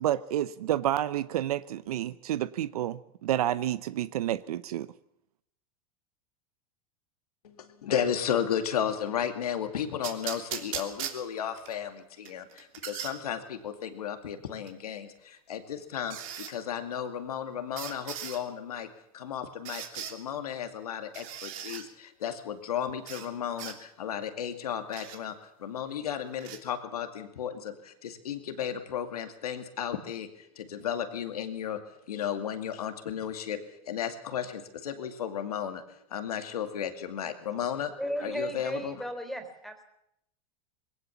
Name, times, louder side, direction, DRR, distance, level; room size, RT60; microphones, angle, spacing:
voice 1, 0.0-4.9, right 12 dB, 80° right, 15 dB, 0.8 m, -29 dB
voice 2, 7.4-18.9 19.1-31.8 32.1-33.6 33.9-35.8 36.1-37.9 38.2-39.0, left 8 dB, 90° left, 7 dB, 2.4 m, -34 dB
sound 1, 10.0-11.7 12.3-13.1 14.7-14.8 16.1-16.5 17.8-18.4 19.7-20.2 21.1-21.8 23.1-23.3 23.6-23.8 24.9-25.2 26.4-26.6, right 10 dB, 65° right, 3.1 m, -38 dB
voice 3, 38.0-39.8, equal, ahead, 7 dB, 4.0 m, -35 dB
21.5 x 17.5 x 7.1 m, 0.79 s
hypercardioid pair, 105°, 19 cm